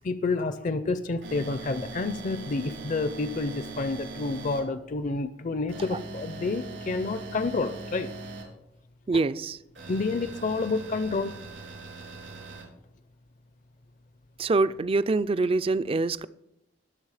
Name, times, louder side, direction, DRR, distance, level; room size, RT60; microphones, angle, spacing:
voice 1, 0.0-8.1 9.1-9.2 9.9-11.4, left 3 dB, 45° left, 12 dB, 0.5 m, -29 dB
sound 1, 1.2-4.6 5.7-8.4 9.7-12.6, right 3 dB, 80° right, 4.4 m, -41 dB
voice 2, 9.1-9.6 14.4-16.3, right 3 dB, 30° right, 16 dB, 0.4 m, -25 dB
20.5 x 7.0 x 4.9 m, 0.86 s
head